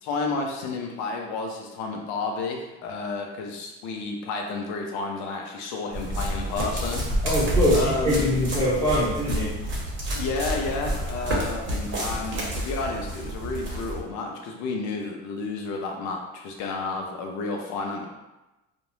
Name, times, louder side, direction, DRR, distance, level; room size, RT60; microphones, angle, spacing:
voice 1, 0.0-7.0 7.7-8.3 10.1-18.1, left 3 dB, 65° left, 1 dB, 0.6 m, -31 dB
sound 1, 5.9-14.0, right 1 dB, 40° right, 0.8 m, -29 dB
voice 2, 7.2-9.6, left 1 dB, 10° left, -11 dB, 0.7 m, -23 dB
2.5 x 2.0 x 2.9 m, 1.0 s
cardioid pair, 115°, 31 cm